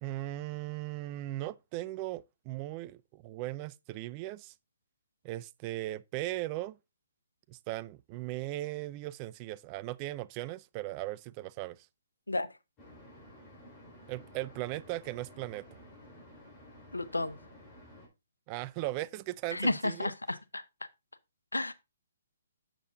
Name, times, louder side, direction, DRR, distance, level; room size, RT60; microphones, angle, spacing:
voice 1, 0.0-4.5 5.2-6.8 7.5-11.9 14.1-15.7 18.5-20.1, right 17 dB, 30° right, 0.4 m, -38 dB
sound 1, 12.8-18.1, equal, 25° left, 4.0 m, -53 dB
voice 2, 16.9-17.4 19.5-20.6 21.5-21.7, left 2 dB, 90° left, 0.8 m, -32 dB
7.5 x 6.6 x 3.8 m
figure-of-eight pair, 135°, 0 cm